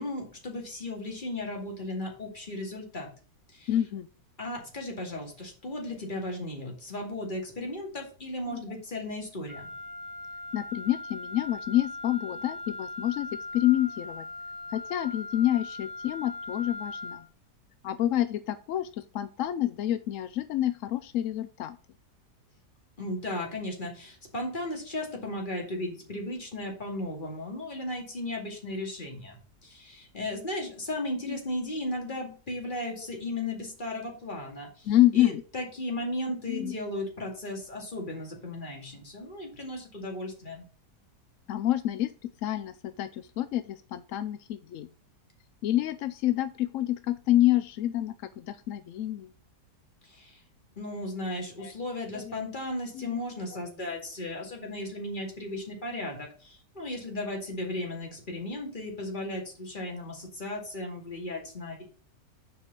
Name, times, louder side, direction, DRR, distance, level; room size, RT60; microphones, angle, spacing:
voice 1, 0.0-3.1 3.5-3.7 4.4-9.7 23.0-40.6 50.0-50.4 50.8-61.8, left 1 dB, 30° left, 0 dB, 2.4 m, -36 dB
voice 2, 3.7-4.1 8.5-8.6 10.5-14.3 14.7-17.3 17.8-21.8 31.3-31.4 33.0-33.1 34.9-35.4 36.5-36.7 41.5-44.9 45.6-49.3 51.6-51.7 52.1-52.3 52.9-53.2, left 13 dB, 75° left, 11 dB, 0.7 m, -28 dB
Wind instrument woodwind instrument, 9.5-17.3, left 2 dB, 65° right, 2.5 m, -40 dB
7.3 x 4.9 x 5.2 m, 0.39 s
omnidirectional pair, 1.8 m